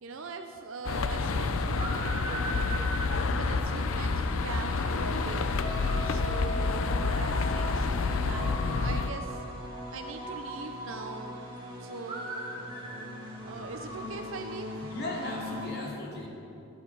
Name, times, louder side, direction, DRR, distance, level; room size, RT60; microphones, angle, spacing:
voice 1, 0.0-2.8 3.3-5.5 6.0-9.4 9.9-11.4 11.8-12.4 13.4-14.7, right 4 dB, 75° right, 5 dB, 0.7 m, -42 dB
sound 1, 0.8-9.1, left 4 dB, 85° left, 0.6 m, -29 dB
sound 2, 0.9-15.7, equal, 25° right, 2.2 m, -40 dB
sound 3, 5.6-10.9 11.2-11.5, equal, 70° left, 2.7 m, -42 dB
voice 2, 14.8-16.3, left 1 dB, 50° left, -3 dB, 2.7 m, -37 dB
16.5 x 11.0 x 4.8 m, 2.8 s
head